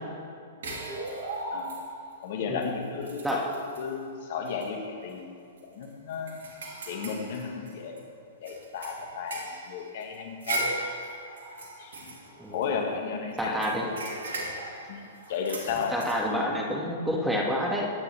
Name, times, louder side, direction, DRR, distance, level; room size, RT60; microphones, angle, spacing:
sound 1, 0.6-2.1 2.6-2.7 3.0-3.9 4.4-4.6 5.0-5.1 5.6-8.0 8.5-12.9 13.4-16.2, right 2 dB, 70° right, 2.7 m, -37 dB
voice 1, 2.2-3.3 3.8-5.3 5.7-6.4 6.9-8.0 8.4-10.7 11.8-12.2 12.5-13.9 14.9-16.4, left 5 dB, 55° left, 3 dB, 1.8 m, -34 dB
voice 2, 3.2-3.6 12.4-12.6 13.4-13.9 15.9-17.9, equal, 5° right, -1 dB, 2.1 m, -28 dB
23.5 x 9.5 x 3.5 m, 2.4 s
hypercardioid pair, 115°, 0 cm